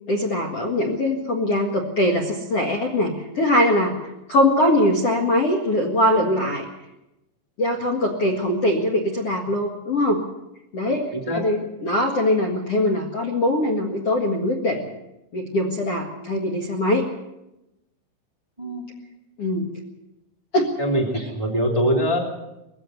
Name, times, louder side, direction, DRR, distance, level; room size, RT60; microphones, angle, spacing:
voice 1, 0.1-3.9 4.3-6.6 7.6-10.2 10.7-11.1 11.3-14.8 15.3-17.0 19.4-19.7 20.5-20.7 21.1-21.3, left 1 dB, 70° left, 3 dB, 1.4 m, -22 dB
voice 2, 20.8-22.2, equal, 35° right, 1 dB, 0.4 m, -23 dB
21.5 x 15.5 x 8.0 m, 0.94 s
omnidirectional pair, 5.9 m